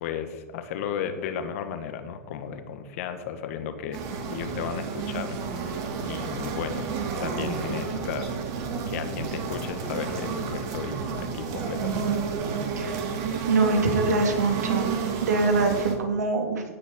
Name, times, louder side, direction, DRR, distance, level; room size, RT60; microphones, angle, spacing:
voice 1, 0.0-4.0 4.3-6.9 7.2-8.4 8.9-12.1, left 8 dB, 60° left, 8 dB, 1.6 m, -34 dB
sound 1, 3.9-16.0, right 5 dB, 45° right, 2.3 m, -31 dB
voice 2, 12.8-13.2 13.5-16.6, right 3 dB, 85° right, 3 dB, 2.5 m, -24 dB
16.5 x 6.4 x 5.4 m, 1.2 s
hypercardioid pair, 120°, 9 cm